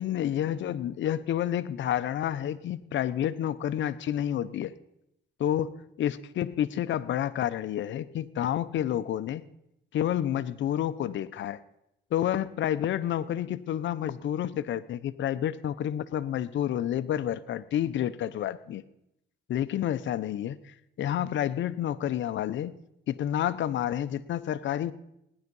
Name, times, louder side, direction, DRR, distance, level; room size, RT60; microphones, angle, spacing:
voice 1, 0.0-4.7 5.4-9.4 9.9-11.6 12.1-18.8 19.5-22.8 23.1-24.9, left 11 dB, 70° left, 14 dB, 0.8 m, -29 dB
18.5 x 11.0 x 5.4 m, 0.82 s
cardioid pair, 90°, 20 cm